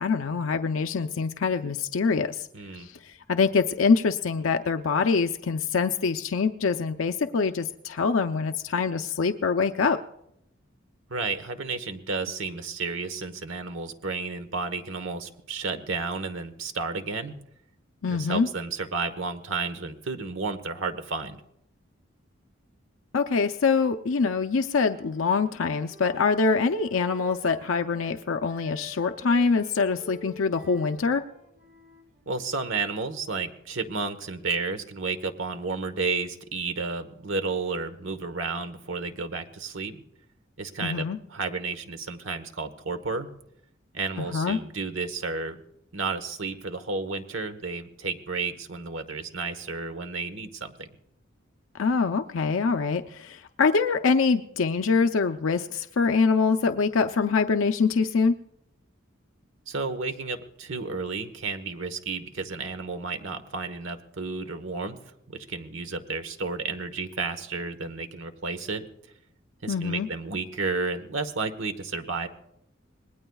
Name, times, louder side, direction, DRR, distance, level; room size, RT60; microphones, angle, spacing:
voice 1, 0.0-2.5 2.7-10.0 18.0-18.5 23.1-31.2 40.8-41.2 44.2-44.6 51.8-58.3 69.7-70.1, left 4 dB, 80° left, 7 dB, 0.6 m, -24 dB
voice 2, 2.5-2.9 11.1-17.4 18.1-21.4 32.3-40.0 40.6-43.3 43.9-45.6 45.9-50.9 59.7-65.0 65.3-68.8 69.6-72.3, right 4 dB, 70° right, 9 dB, 1.2 m, -32 dB
Wind instrument woodwind instrument, 24.9-28.2 28.5-32.6, equal, 50° right, 4.5 m, -49 dB
26.0 x 20.5 x 2.3 m, 0.79 s
head